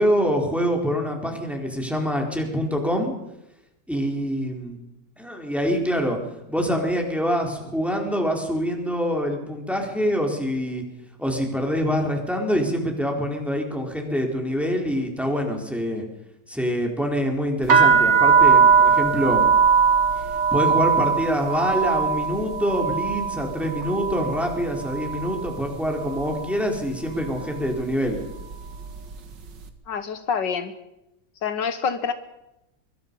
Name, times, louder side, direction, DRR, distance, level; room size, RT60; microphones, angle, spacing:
voice 1, 0.0-3.1 3.9-4.8 5.2-6.2 6.5-10.8 11.2-16.0 16.5-19.5 20.5-28.2, equal, ahead, 1 dB, 4.1 m, -25 dB
sound 1, 17.6-25.6 25.8-26.5 27.1-27.4 27.7-29.1, right 6 dB, 70° right, 2.5 m, -20 dB
voice 2, 29.9-30.7 31.4-32.1, left 6 dB, 75° left, 10 dB, 1.8 m, -26 dB
24.0 x 23.0 x 5.5 m, 0.89 s
omnidirectional pair, 2.0 m